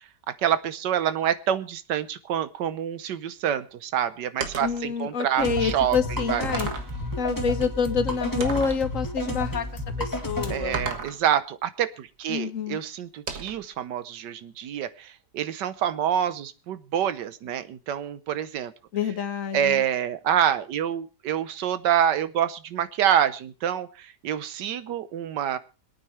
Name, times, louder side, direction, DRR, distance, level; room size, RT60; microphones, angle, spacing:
voice 1, 0.4-6.0 6.3-6.5 10.5-18.7 19.5-25.6, right 9 dB, 85° right, 13 dB, 1.5 m, -27 dB
sound 1, 4.4-4.8 5.6-5.7 6.4-7.0 8.4-8.9 10.7-11.2 13.3-13.7, right 5 dB, 50° right, 1.8 m, -33 dB
voice 2, 4.6-6.7 7.2-10.9 12.3-12.8 18.9-19.8, left 6 dB, 55° left, 11 dB, 1.2 m, -27 dB
sound 2, 5.4-10.9, left 1 dB, 10° left, 1.9 m, -31 dB
25.5 x 9.0 x 3.2 m, 0.31 s
omnidirectional pair, 1.8 m